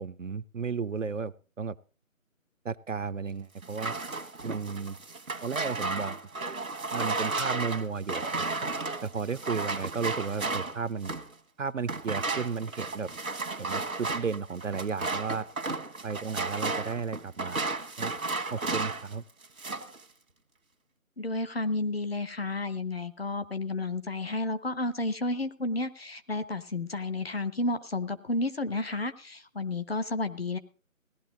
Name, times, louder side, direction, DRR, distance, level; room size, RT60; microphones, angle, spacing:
voice 1, 0.0-1.8 2.6-3.9 4.4-5.0 5.4-6.2 6.9-8.5 9.0-11.1 11.6-13.1 13.6-15.5 16.0-17.6 18.0-18.1 18.5-19.2, right 5 dB, 65° right, 14 dB, 0.5 m, -34 dB
sound 1, 3.6-11.3 11.8-19.1 19.4-20.0, right 3 dB, 85° right, 1.3 m, -33 dB
voice 2, 21.2-30.6, left 2 dB, 45° left, 10 dB, 0.8 m, -31 dB
17.0 x 11.5 x 3.9 m, 0.37 s
figure-of-eight pair, 165°, 41 cm